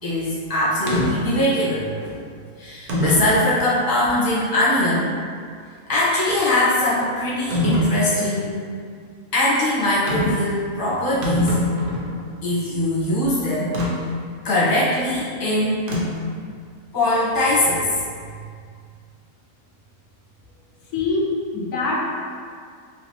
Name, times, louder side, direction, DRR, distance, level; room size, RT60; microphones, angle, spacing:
voice 1, 0.0-2.0 2.6-5.1 5.9-8.6 9.3-11.6 12.4-13.7 14.4-15.8 16.9-18.0, left 1 dB, 20° left, -9 dB, 0.7 m, -21 dB
sound 1, 0.9-1.1 2.0-2.1 2.9-3.4 4.0-4.1 7.5-7.9 10.1-10.4 10.8-10.9 11.1-12.2 13.7-13.9 15.9-16.3, left 1 dB, 55° right, 0.6 m, -23 dB
voice 2, 20.9-22.0, left 3 dB, 85° left, -3 dB, 1.1 m, -23 dB
3.2 x 2.7 x 2.8 m, 2.1 s
omnidirectional pair, 1.6 m